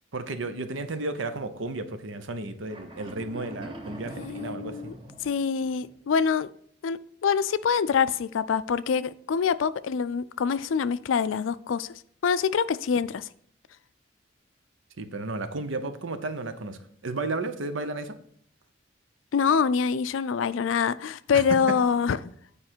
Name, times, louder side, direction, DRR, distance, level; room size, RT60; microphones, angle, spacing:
voice 1, 0.1-4.9 15.0-18.1 21.3-21.7, right 2 dB, 90° right, 0.8 m, -33 dB
sound 1, 2.7-6.0, right 1 dB, 25° right, 0.9 m, -43 dB
voice 2, 4.2-4.9 5.2-6.5 6.8-11.9 12.2-13.3 19.3-22.3, left 6 dB, 90° left, 0.4 m, -25 dB
8.7 x 5.0 x 4.5 m
head